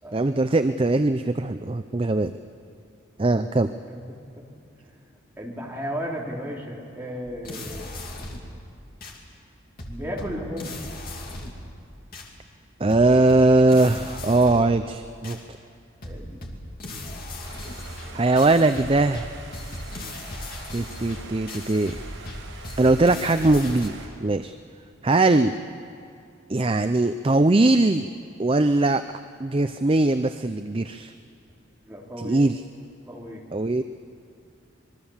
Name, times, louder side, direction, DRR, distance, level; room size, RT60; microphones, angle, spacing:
voice 1, 0.1-2.3 3.2-3.7 12.8-15.4 18.1-19.3 20.7-22.0 22.8-24.5 25.0-25.6 26.5-28.1 28.4-29.0 29.4-31.1 32.2-32.6 33.5-33.8, right 2 dB, 25° right, 9 dB, 0.5 m, -20 dB
voice 2, 3.9-4.5 4.8-5.0 5.4-7.9 9.9-10.7 16.0-16.4 31.8-32.4 33.0-33.4, equal, 10° right, -4 dB, 3.7 m, -35 dB
sound 1, 7.3-8.6 9.0-9.2 9.8-11.7 12.1-12.3 12.9-14.8 15.2-15.4 16.0-23.9, left 1 dB, 45° left, 2.8 m, -37 dB
sound 2, 17.4-24.1, right 3 dB, 80° right, 4.9 m, -44 dB
26.0 x 22.0 x 7.3 m, 2.5 s
head